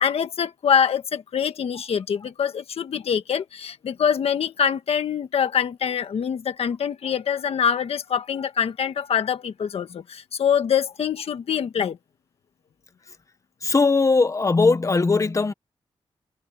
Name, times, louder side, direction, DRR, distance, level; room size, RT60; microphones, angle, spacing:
voice 1, 0.0-12.0, left 7 dB, 75° left, 1.5 m, -24 dB
voice 2, 13.6-15.5, left 3 dB, 30° left, 1.4 m, -19 dB
wide cardioid pair, 110°, 10 cm